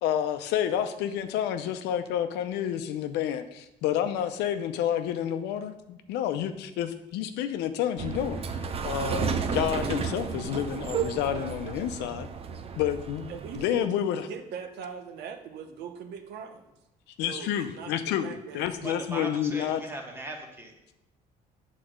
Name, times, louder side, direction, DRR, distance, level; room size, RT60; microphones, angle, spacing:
voice 1, 0.0-8.5 8.8-12.3 12.8-14.3 17.2-19.8, left 10 dB, 90° left, 9 dB, 0.7 m, -29 dB
sound 1, 8.0-13.6, right 6 dB, 35° right, 0.6 m, -32 dB
voice 2, 13.3-16.7 17.3-18.0 18.2-19.6, right 6 dB, 75° right, 6 dB, 1.0 m, -41 dB
voice 3, 18.8-20.7, right 1 dB, 15° right, 1 dB, 1.6 m, -38 dB
7.9 x 4.2 x 6.4 m, 0.87 s
cardioid pair, 110°, 17 cm